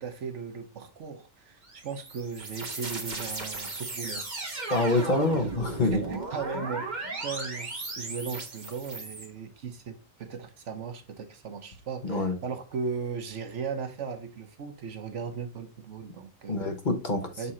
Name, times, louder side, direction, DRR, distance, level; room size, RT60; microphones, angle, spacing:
voice 1, 0.0-4.3 5.9-6.9 7.2-7.7 8.0-16.7 17.4-17.5, right 5 dB, 65° right, 1.2 m, -37 dB
sound 1, 1.6-9.3, right 3 dB, 35° right, 1.5 m, -36 dB
voice 2, 4.7-6.0 12.0-12.4 16.5-17.5, left 2 dB, 40° left, 1.2 m, -26 dB
6.8 x 3.7 x 4.2 m
omnidirectional pair, 1.4 m